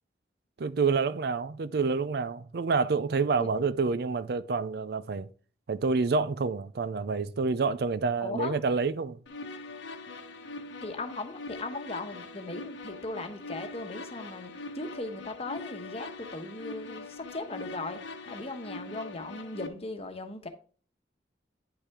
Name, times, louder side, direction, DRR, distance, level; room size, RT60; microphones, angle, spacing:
voice 1, 0.6-5.3 5.7-9.2, right 4 dB, 60° right, 0.5 m, -28 dB
voice 2, 8.2-8.5 10.8-18.0 18.3-20.5, left 2 dB, 35° left, 1.1 m, -38 dB
sound 1, 9.3-19.7, left 3 dB, 85° left, 1.1 m, -42 dB
10.0 x 5.6 x 3.6 m
head